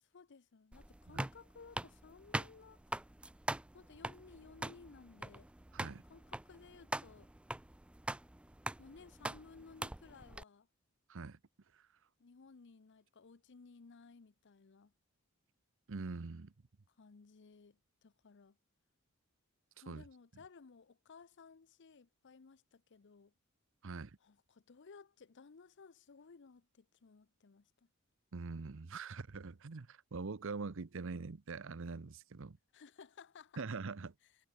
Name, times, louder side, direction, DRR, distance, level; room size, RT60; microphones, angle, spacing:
voice 1, 0.0-2.8 3.7-5.5 6.1-7.3 8.8-10.7 12.2-14.9 16.9-18.6 19.8-23.3 24.2-27.9 32.7-33.6 34.2-34.3, left 5 dB, 55° left, 0.6 m, -58 dB
sound 1, 0.7-10.4, right 1 dB, 5° right, 0.3 m, -43 dB
voice 2, 11.1-11.4 11.7-11.9 15.9-16.5 19.9-20.0 23.8-24.2 28.3-32.6 33.6-34.1, right 4 dB, 65° right, 0.8 m, -43 dB
head